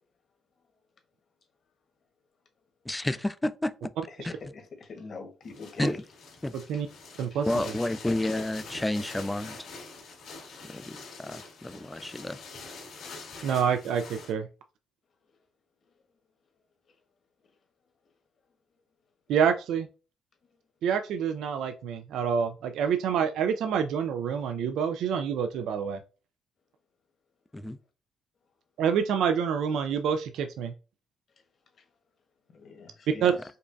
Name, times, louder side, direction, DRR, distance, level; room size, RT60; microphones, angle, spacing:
voice 1, 2.9-3.7 4.2-4.5 5.8-6.0 6.4-6.6 7.5-9.6 10.6-12.4 27.5-27.8 33.3-33.4, left 1 dB, 10° left, 0.3 m, -30 dB
voice 2, 4.8-6.0 32.5-33.3, left 4 dB, 55° left, 1.1 m, -43 dB
sound 1, 5.4-14.3, left 4 dB, 80° left, 1.6 m, -45 dB
voice 3, 13.4-14.5 19.3-19.9 20.8-26.0 28.8-30.7 33.2-33.3, right 7 dB, 80° right, 0.3 m, -27 dB
5.2 x 2.3 x 2.5 m
cardioid pair, 90°, 0 cm